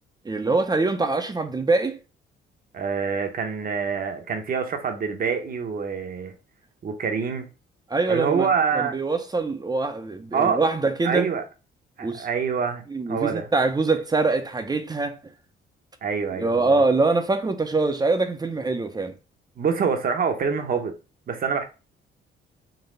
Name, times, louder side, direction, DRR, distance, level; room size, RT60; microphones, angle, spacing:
voice 1, 0.2-2.0 7.9-8.5 8.7-11.3 12.0-12.3 12.9-15.2 16.3-19.1, right 3 dB, 20° right, 0.6 m, -24 dB
voice 2, 2.7-6.3 6.8-7.5 8.1-8.9 10.3-10.6 11.0-11.4 12.0-13.5 16.0-16.8 19.6-20.9 21.3-21.6, right 6 dB, 45° right, 0.8 m, -26 dB
4.0 x 2.2 x 3.8 m
cardioid pair, 90°, 20 cm